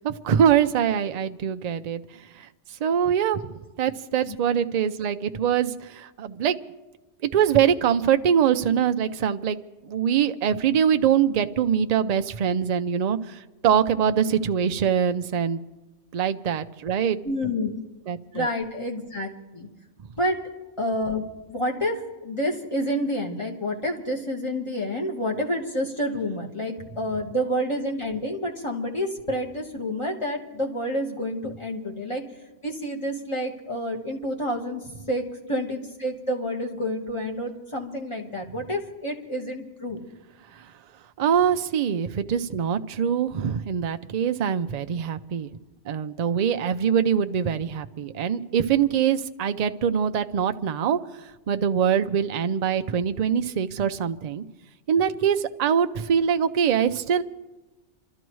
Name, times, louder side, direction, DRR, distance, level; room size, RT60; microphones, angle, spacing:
voice 1, 0.0-6.6 7.3-9.6 9.8-15.6 16.1-17.2 18.1-18.5 40.5-40.7 41.2-45.5 45.8-54.4 54.9-57.2, right 8 dB, 50° right, 9 dB, 0.5 m, -23 dB
voice 2, 17.2-17.8 18.3-19.7 20.2-20.4 20.8-32.2 32.6-40.0, equal, 25° left, 1 dB, 1.5 m, -29 dB
27.5 x 13.0 x 3.1 m, 1.1 s
omnidirectional pair, 1.2 m